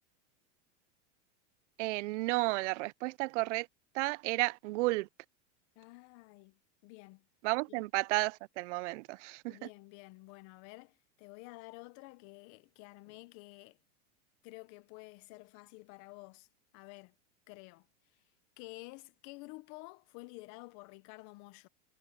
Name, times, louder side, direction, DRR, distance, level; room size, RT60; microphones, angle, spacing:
voice 1, 1.8-3.7 4.0-5.1 7.4-9.5, right 22 dB, 70° right, 0.5 m, -32 dB
voice 2, 5.8-7.3 7.7-7.8 9.5-13.8 14.4-16.5 16.7-17.1 17.5-17.9 18.1-18.2 18.6-21.7, left 24 dB, 50° left, 0.9 m, -51 dB
supercardioid pair, 145°, 37 cm